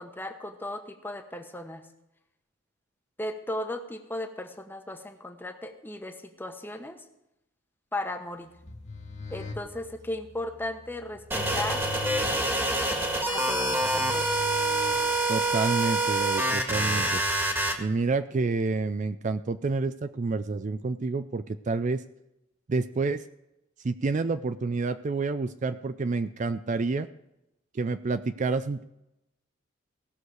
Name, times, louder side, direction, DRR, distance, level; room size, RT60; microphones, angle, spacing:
voice 1, 0.0-1.8 3.2-7.0 7.9-8.5 9.3-11.8 13.3-14.3, left 1 dB, 10° left, 5 dB, 1.1 m, -36 dB
sound 1, 8.6-15.5, left 4 dB, 40° left, 1.3 m, -41 dB
sound 2, 11.3-17.7, right 2 dB, 10° right, 1.6 m, -26 dB
voice 2, 15.3-17.2 17.8-22.0 22.7-23.2 23.8-27.1 27.7-28.8, right 3 dB, 40° right, 12 dB, 0.4 m, -28 dB
17.5 x 6.5 x 4.8 m, 0.89 s
head